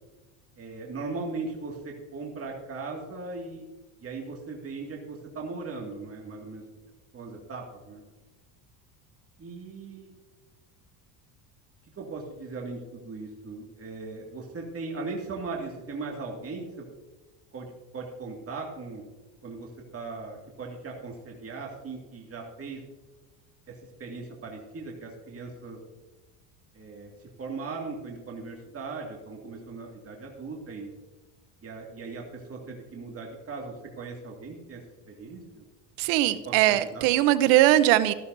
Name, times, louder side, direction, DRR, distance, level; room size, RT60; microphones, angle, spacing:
voice 1, 0.6-3.6 4.0-6.6 7.1-8.0 9.4-10.1 12.0-16.9 17.5-19.0 19.4-22.8 23.7-25.8 26.7-27.1 27.4-30.9 31.6-35.6 36.4-37.1, right 3 dB, 30° right, 0 dB, 2.2 m, -38 dB
voice 2, 36.0-38.1, right 14 dB, 80° right, 14 dB, 0.9 m, -20 dB
13.5 x 13.0 x 2.7 m, 1.2 s
supercardioid pair, 95°, 45 cm